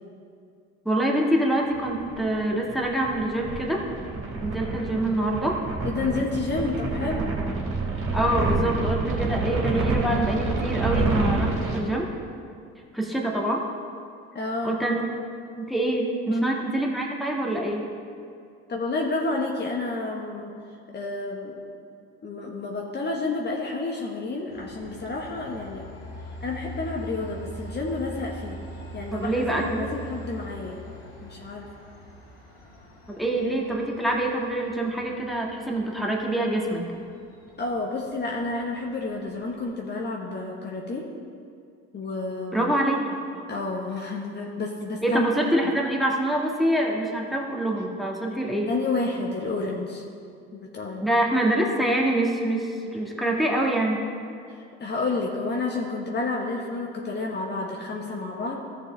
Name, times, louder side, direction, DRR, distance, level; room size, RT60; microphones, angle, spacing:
voice 1, 0.9-3.9 4.4-5.6 8.1-12.1 12.9-13.6 14.6-15.0 15.6-17.8 29.1-29.9 33.1-36.8 42.5-43.0 45.0-48.7 51.0-54.0, right 1 dB, ahead, -1 dB, 1.8 m, -25 dB
sound 1, 1.8-11.8, right 3 dB, 45° right, 2.6 m, -28 dB
voice 2, 5.8-7.3 14.3-14.8 16.3-16.5 18.7-20.5 20.9-21.6 22.2-25.9 26.4-28.6 28.9-30.8 31.2-31.7 37.6-41.1 41.9-42.7 43.5-45.2 45.6-45.7 48.7-50.0 50.5-51.0 54.5-58.6, left 3 dB, 35° left, -1 dB, 1.3 m, -30 dB
Train, 24.5-39.6, right 1 dB, 80° left, 2.4 m, -43 dB
14.0 x 6.9 x 3.4 m, 2.3 s
hypercardioid pair, 70°, 31 cm